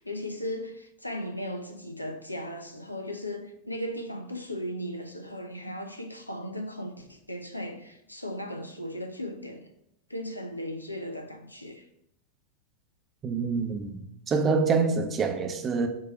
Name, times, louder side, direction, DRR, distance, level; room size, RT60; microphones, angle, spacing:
voice 1, 0.0-9.7 10.1-11.8, equal, 85° left, 0.7 m, -37 dB
voice 2, 13.2-14.0 14.3-15.9, right 4 dB, 25° right, 0.7 m, -26 dB
7.6 x 2.9 x 4.8 m
figure-of-eight pair, 90°, 0 cm